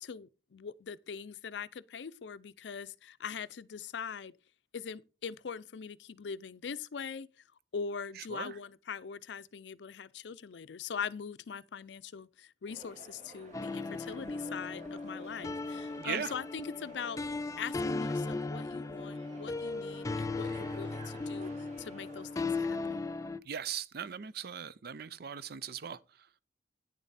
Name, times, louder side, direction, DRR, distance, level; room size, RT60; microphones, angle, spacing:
voice 1, 0.0-4.3 4.7-7.3 7.7-17.2 17.6-23.0, left 6 dB, 80° left, 0.5 m, -42 dB
sound 1, 12.7-22.4, right 2 dB, 45° right, 1.9 m, -53 dB
sound 2, 13.5-23.4, left 3 dB, 20° left, 0.4 m, -37 dB
voice 2, 16.0-16.3 23.5-26.0, right 7 dB, 60° right, 0.5 m, -38 dB
9.6 x 7.1 x 4.1 m
head